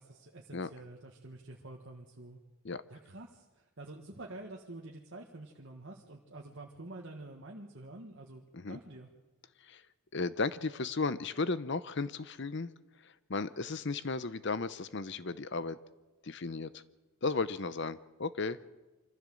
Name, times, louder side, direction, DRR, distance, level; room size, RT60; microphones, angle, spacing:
voice 1, 0.0-2.4 2.9-9.1, right 2 dB, 55° right, -1 dB, 1.7 m, -48 dB
voice 2, 10.1-12.7 13.0-15.8 16.2-16.8 17.2-18.6, left 3 dB, 55° left, 15 dB, 0.8 m, -35 dB
25.0 x 14.5 x 7.7 m, 1.1 s
head